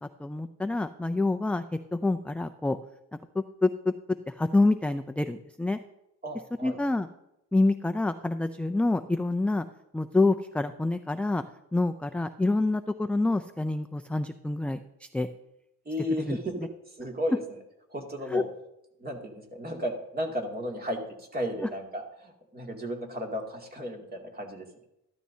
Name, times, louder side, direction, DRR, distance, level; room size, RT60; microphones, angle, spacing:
voice 1, 0.0-1.6 1.9-2.8 3.3-3.7 4.4-5.8 6.6-7.1 7.5-9.6 9.9-11.4 11.7-15.3 16.3-16.4 18.3-18.4, left 2 dB, 5° left, 8 dB, 0.4 m, -27 dB
voice 2, 6.2-6.8 15.8-17.6 17.9-18.4 19.0-24.7, equal, 30° right, 0 dB, 2.5 m, -34 dB
13.5 x 12.5 x 2.8 m, 0.84 s
cardioid pair, 110°, 33 cm